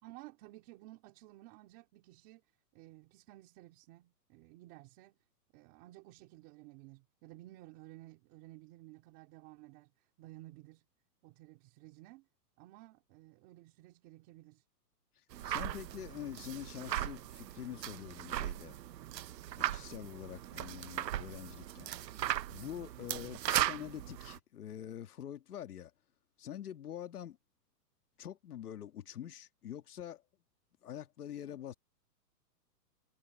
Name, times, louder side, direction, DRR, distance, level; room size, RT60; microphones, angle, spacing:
voice 1, 0.0-5.2 5.5-10.9 11.2-12.3 12.6-14.6 18.9-19.4, right 18 dB, 20° right, 3.4 m, -55 dB
sound 1, 15.3-24.4, right 12 dB, 90° right, 0.9 m, -38 dB
voice 2, 15.4-18.7 19.7-21.9 22.5-25.9 26.4-27.4 28.2-30.2 30.8-31.7, left 10 dB, 65° left, 2.0 m, -45 dB
hypercardioid pair, 180°, 49 cm